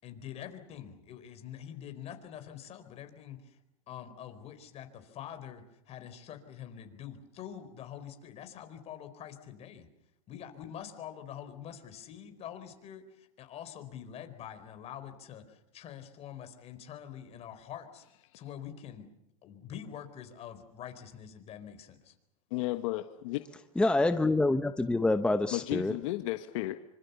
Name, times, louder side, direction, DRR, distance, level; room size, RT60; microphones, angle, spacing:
voice 1, 0.0-3.6 3.9-9.9 10.3-18.0 18.3-19.1 19.4-22.1, left 9 dB, 35° left, 4.4 m, -45 dB
voice 2, 22.5-23.4 25.5-26.8, left 17 dB, 65° left, 1.5 m, -33 dB
voice 3, 23.8-25.9, left 2 dB, 5° left, 1.0 m, -26 dB
26.0 x 25.5 x 7.0 m
supercardioid pair, 125°, 18 cm